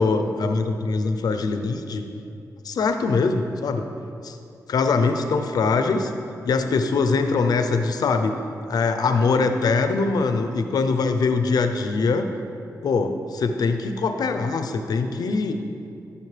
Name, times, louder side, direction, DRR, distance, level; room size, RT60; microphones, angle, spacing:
voice 1, 0.0-2.1 2.6-3.9 4.2-4.4 4.7-6.1 6.4-8.3 8.7-12.3 12.8-15.5, left 4 dB, 75° left, 7 dB, 0.6 m, -22 dB
15.5 x 5.3 x 3.3 m, 2.7 s
cardioid pair, 75°, 7 cm